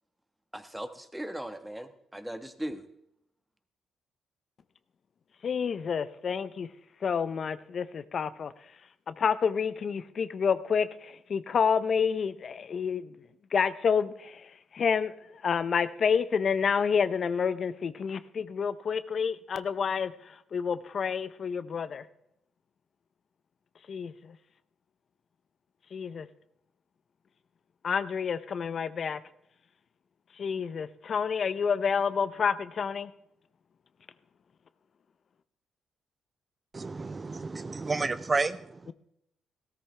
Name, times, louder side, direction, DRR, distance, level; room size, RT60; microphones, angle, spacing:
voice 1, 0.5-2.9, right 1 dB, 5° right, 1.2 m, -38 dB
voice 2, 5.4-6.7 7.0-8.5 9.1-13.1 13.5-14.4 14.7-15.1 15.4-20.1 20.5-22.0 23.9-24.3 25.9-26.3 27.8-29.2 30.4-33.1, left 6 dB, 50° left, 0.6 m, -29 dB
voice 3, 36.7-38.9, right 3 dB, 30° right, 0.4 m, -31 dB
17.0 x 13.5 x 3.3 m
cardioid pair, 90°, 0 cm